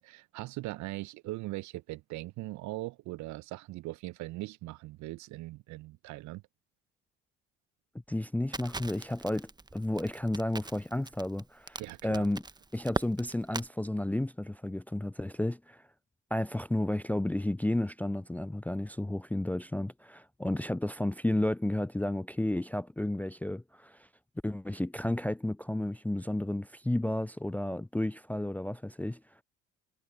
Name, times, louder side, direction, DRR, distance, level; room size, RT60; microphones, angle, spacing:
voice 1, 0.0-6.4 11.8-12.3, right 19 dB, 55° right, 1.1 m, -40 dB
voice 2, 8.1-12.4 12.7-15.8 16.3-24.1 24.4-29.2, left 1 dB, 5° left, 0.6 m, -32 dB
Crackle, 8.5-13.7, right 3 dB, 10° right, 1.4 m, -40 dB
figure-of-eight pair, 55°, 34 cm